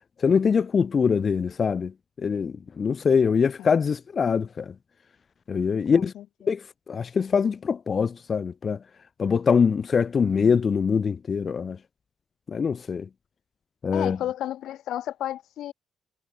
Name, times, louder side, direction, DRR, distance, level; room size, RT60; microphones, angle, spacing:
voice 1, 0.2-1.9 2.2-4.7 5.5-6.1 6.5-6.6 6.9-8.8 9.2-11.8 12.5-13.0 13.8-14.2, left 6 dB, 45° left, 0.7 m, -23 dB
voice 2, 5.9-6.3 13.9-15.7, left 12 dB, 80° left, 2.2 m, -32 dB
cardioid pair, 90°, 0 cm